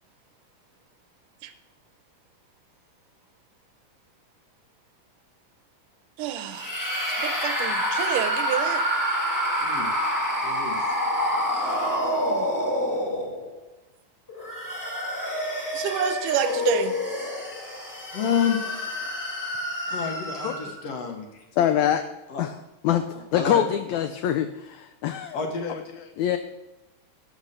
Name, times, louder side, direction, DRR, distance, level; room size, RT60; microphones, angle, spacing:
voice 1, 6.2-6.7 7.2-8.8 12.0-12.5 15.7-17.0, right 10 dB, 80° right, 10 dB, 2.1 m, -29 dB
sound 1, 6.5-13.6 14.3-20.8, equal, 10° left, 0.9 m, -27 dB
voice 2, 9.6-9.9 10.4-11.0 18.1-18.6 19.9-21.5 22.3-22.5 23.3-23.7 25.3-25.8, left 7 dB, 60° left, 3 dB, 1.9 m, -29 dB
voice 3, 20.3-20.7 21.5-22.1 22.4-22.6 22.8-23.1 23.3-25.4 25.7-26.4, left 10 dB, 85° left, 8 dB, 1.6 m, -25 dB
13.5 x 5.4 x 6.6 m, 0.99 s
omnidirectional pair, 3.8 m